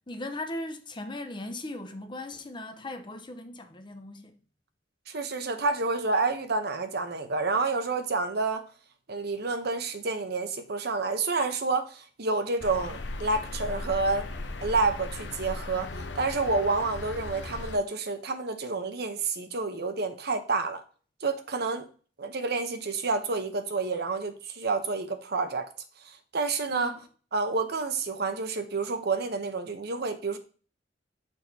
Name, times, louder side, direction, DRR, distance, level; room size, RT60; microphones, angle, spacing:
voice 1, 0.1-4.3 26.7-27.0, left 1 dB, 25° left, 0.8 m, -38 dB
voice 2, 5.1-8.7 9.1-14.3 14.6-20.8 21.2-21.9 22.2-25.7 26.0-26.9 27.3-30.4, right 3 dB, 60° right, 0.9 m, -29 dB
sound 1, 12.6-17.8, left 2 dB, 70° left, 0.8 m, -37 dB
6.5 x 6.3 x 2.8 m
head